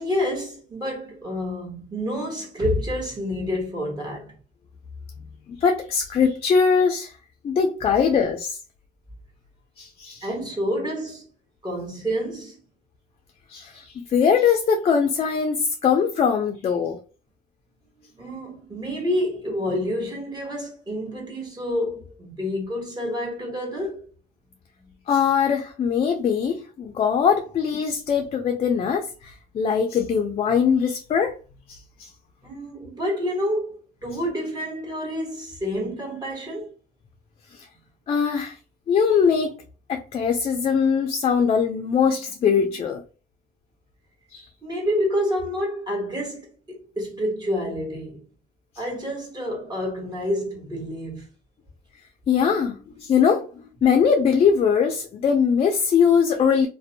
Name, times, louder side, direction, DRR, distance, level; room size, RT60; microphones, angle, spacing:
voice 1, 0.0-4.3 10.2-11.3 11.6-12.6 18.2-24.1 24.8-24.9 32.4-36.7 44.6-48.2 48.8-51.3, equal, 25° right, 1.1 m, -28 dB
voice 2, 5.6-7.1 7.4-8.6 9.8-10.3 13.5-17.0 25.1-31.3 31.7-32.1 37.5-37.7 38.1-38.6 38.9-39.6 39.9-43.0 44.3-44.5 52.3-53.5 53.8-56.7, left 6 dB, 35° left, 0.4 m, -21 dB
2.5 x 2.1 x 2.6 m
cardioid pair, 110°, 17 cm